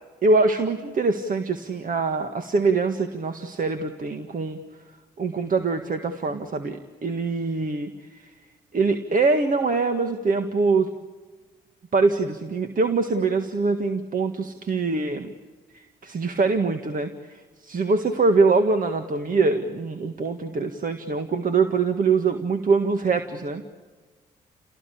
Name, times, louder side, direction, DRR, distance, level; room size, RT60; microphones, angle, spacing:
voice 1, 0.2-4.6 5.2-8.2 8.7-10.9 11.9-15.3 15.7-23.6, right 4 dB, 45° right, 7 dB, 1.8 m, -23 dB
30.0 x 18.0 x 8.6 m, 1.4 s
supercardioid pair, 55°, 19 cm